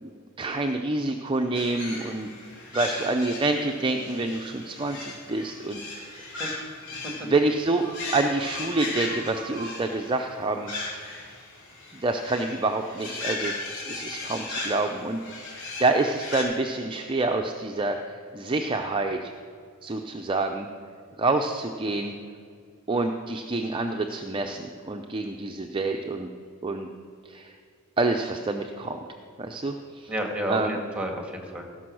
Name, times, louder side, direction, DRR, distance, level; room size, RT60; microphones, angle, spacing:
voice 1, 0.0-2.3 2.7-6.3 7.2-10.7 11.9-13.5 13.9-15.5 15.8-19.3 19.8-20.7 21.2-22.2 22.9-26.3 26.6-26.9 27.3-27.5 28.0-29.0 29.4-30.1 30.5-30.8, right 2 dB, 25° right, 4 dB, 0.5 m, -27 dB
sound 1, 1.5-16.4, left 2 dB, 65° left, 3.2 m, -37 dB
voice 2, 30.1-31.8, right 1 dB, 5° right, 2 dB, 1.6 m, -31 dB
16.0 x 6.1 x 6.2 m, 2.2 s
head